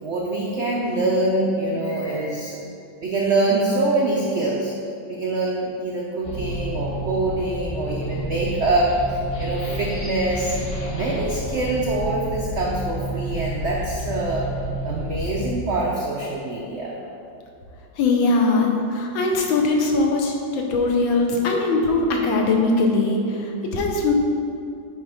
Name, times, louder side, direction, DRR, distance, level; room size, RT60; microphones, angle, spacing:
voice 1, 0.0-2.6 3.0-4.7 5.1-10.6 10.9-14.5 14.8-17.0, right 2 dB, 85° right, -3 dB, 0.6 m, -24 dB
sound 1, 6.2-15.6, equal, 50° left, 1.2 m, -30 dB
voice 2, 18.0-24.1, left 3 dB, 90° left, 1 dB, 1.6 m, -21 dB
9.2 x 3.2 x 4.9 m, 2.6 s
omnidirectional pair, 2.1 m